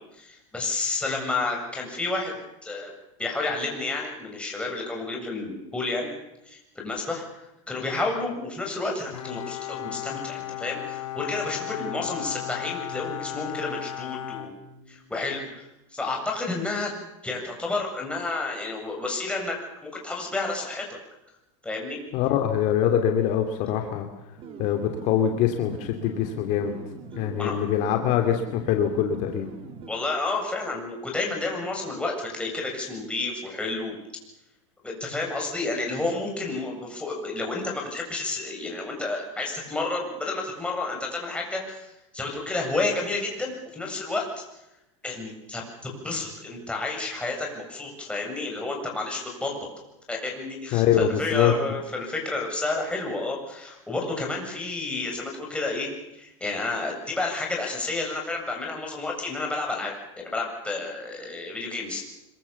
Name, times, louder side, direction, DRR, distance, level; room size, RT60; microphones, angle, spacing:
voice 1, 0.2-2.4 2.6-2.9 3.2-6.1 6.5-7.2 7.7-14.5 14.9-16.9 17.2-19.6 19.8-21.0 21.6-22.0 27.4-27.6 29.9-34.0 34.8-41.9 42.1-44.2 45.0-49.6 50.1-62.0, left 3 dB, 5° left, 0 dB, 7.9 m, -30 dB
Bowed string instrument, 9.1-15.3, left 12 dB, 90° left, 3.7 m, -35 dB
voice 2, 22.1-24.1 24.6-26.7 27.1-29.5 50.7-51.5, left 9 dB, 50° left, 4 dB, 2.8 m, -23 dB
sound 1, 24.4-29.9, right 6 dB, 35° right, 3.7 m, -42 dB
25.5 x 23.5 x 7.2 m, 0.88 s
supercardioid pair, 135°, 16 cm